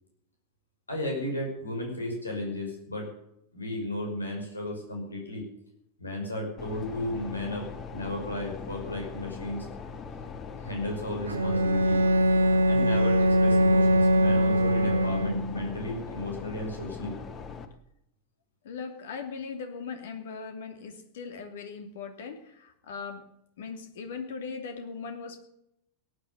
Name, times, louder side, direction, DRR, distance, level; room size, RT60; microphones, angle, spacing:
voice 1, 0.9-3.1 3.5-5.5 6.0-9.7 10.6-12.0 12.7-17.2, left 1 dB, 80° left, 1 dB, 5.7 m, -34 dB
sound 1, 6.6-17.7, left 5 dB, 25° left, 1.6 m, -41 dB
Bowed string instrument, 11.3-15.7, equal, 75° right, 1.0 m, -22 dB
voice 2, 18.6-23.3 23.6-25.4, left 5 dB, 60° left, 6 dB, 2.7 m, -39 dB
17.5 x 10.0 x 6.9 m, 0.79 s
figure-of-eight pair, 90°, 0 cm